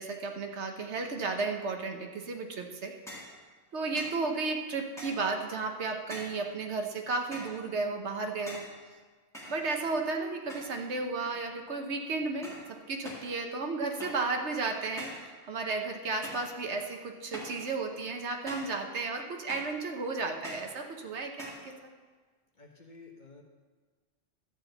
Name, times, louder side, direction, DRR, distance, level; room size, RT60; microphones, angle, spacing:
voice 1, 0.0-2.9 3.7-8.7 9.5-21.9, right 3 dB, 65° right, 3 dB, 1.2 m, -33 dB
sound 1, 3.1-3.4 4.0-4.2 5.0-5.3 6.1-6.5 7.3-7.6 8.5-8.8 9.3-10.0 10.5-10.9 11.2-11.7 12.4-12.7 13.0-13.3 14.0-14.3 15.0-15.3 16.2-16.6 17.3-17.6 18.5-18.8 19.5-19.8 20.4-20.7 21.4-21.7, equal, ahead, 2.0 m, -44 dB
voice 2, 22.5-23.4, left 3 dB, 40° left, 1 dB, 1.1 m, -52 dB
12.0 x 4.3 x 7.8 m, 1.4 s
omnidirectional pair, 1.3 m